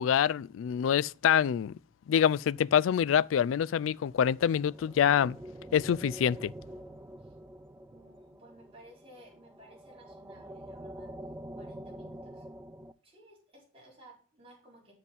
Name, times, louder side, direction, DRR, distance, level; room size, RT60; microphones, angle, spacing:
voice 1, 0.0-1.7 2.1-5.4 5.7-6.5, left 8 dB, 85° left, 0.3 m, -26 dB
sound 1, 4.1-12.9, right 1 dB, 10° right, 0.4 m, -46 dB
voice 2, 7.9-11.1 11.5-12.5 13.0-14.9, right 1 dB, 30° right, 4.1 m, -56 dB
8.8 x 7.4 x 4.1 m
head